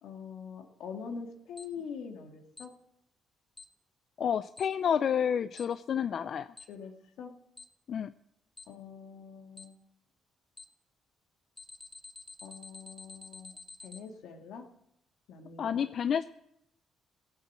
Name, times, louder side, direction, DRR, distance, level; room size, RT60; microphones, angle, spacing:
voice 1, 0.0-2.7 6.7-7.3 8.7-9.8 12.4-14.7 15.3-15.9, left 6 dB, 85° left, 4 dB, 2.1 m, -44 dB
Alarm, 1.6-1.7 2.6-2.7 3.6-3.7 4.6-4.7 5.6-5.7 6.6-6.7 7.6-7.7 8.6-8.7 9.6-9.7 10.6-10.7 11.6-14.0, left 3 dB, 20° left, 1.0 m, -47 dB
voice 2, 4.2-6.5 7.9-8.1 15.6-16.2, left 8 dB, 60° left, 12 dB, 0.4 m, -29 dB
18.0 x 8.3 x 7.4 m, 0.78 s
cardioid pair, 90°, 0 cm